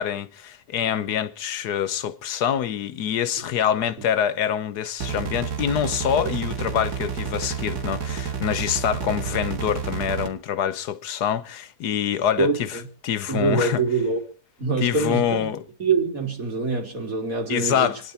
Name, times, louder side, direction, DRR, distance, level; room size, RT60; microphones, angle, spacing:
voice 1, 0.0-13.8 14.8-15.6 17.5-18.0, left 9 dB, 85° left, 1.5 m, -25 dB
sound 1, 5.0-10.3, right 7 dB, 85° right, 2.2 m, -30 dB
voice 2, 12.4-12.9 13.3-14.2 14.6-15.4 15.8-17.9, right 4 dB, 60° right, 3.6 m, -24 dB
27.5 x 10.5 x 4.3 m
omnidirectional pair, 1.7 m